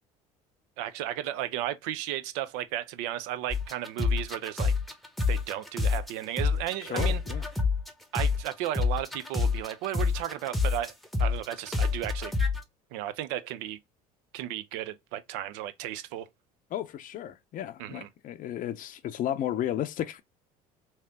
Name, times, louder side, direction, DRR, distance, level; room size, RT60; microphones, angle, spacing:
voice 1, 0.8-4.7 5.3-7.2 8.1-10.9 11.2-12.3 12.9-13.8 14.3-16.3 17.8-18.1, right 12 dB, 70° right, 0.6 m, -34 dB
sound 1, 3.5-6.1 6.4-12.6, left 4 dB, ahead, 0.9 m, -27 dB
voice 2, 6.9-7.4 16.7-20.2, left 11 dB, 45° left, 0.5 m, -33 dB
3.2 x 2.8 x 3.5 m
hypercardioid pair, 70°, 19 cm